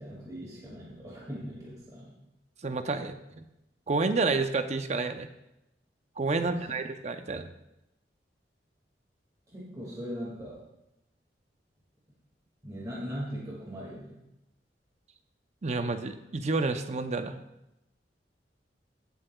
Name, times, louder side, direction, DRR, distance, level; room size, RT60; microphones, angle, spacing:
voice 1, 0.0-2.1 6.4-6.8 9.5-10.6 12.6-14.2, equal, 20° right, -5 dB, 2.1 m, -40 dB
voice 2, 2.6-3.4 3.9-5.3 6.2-7.5 15.6-17.4, right 3 dB, 40° right, 8 dB, 0.6 m, -29 dB
17.0 x 7.6 x 2.3 m, 0.89 s
head